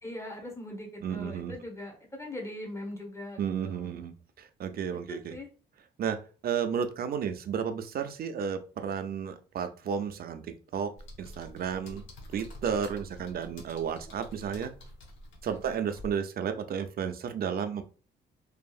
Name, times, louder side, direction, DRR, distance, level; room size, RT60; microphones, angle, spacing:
voice 1, 0.0-3.9 5.1-5.5 15.5-15.8, left 1 dB, 15° left, 0 dB, 1.0 m, -41 dB
voice 2, 1.0-1.5 3.4-4.1 4.6-5.3 6.0-6.2 6.4-10.4 10.7-12.0 12.3-14.7 15.4-17.8, right 7 dB, 50° right, 8 dB, 0.4 m, -32 dB
sound 1, 11.0-16.1, left 1 dB, 80° left, 0.9 m, -47 dB
2.7 x 2.4 x 2.3 m, 0.36 s
cardioid pair, 90°, 20 cm